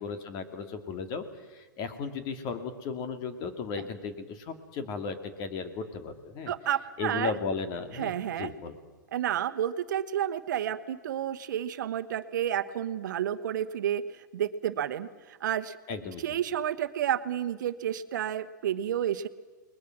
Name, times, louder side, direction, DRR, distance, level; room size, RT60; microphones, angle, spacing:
voice 1, 0.0-6.5 7.0-8.7 15.9-16.2, left 5 dB, 40° left, 7 dB, 2.7 m, -35 dB
voice 2, 6.5-7.3 7.9-8.5 9.1-15.8 16.2-19.3, right 10 dB, 70° right, 12 dB, 1.1 m, -30 dB
29.5 x 21.0 x 6.1 m, 1.3 s
hypercardioid pair, 110°, 10 cm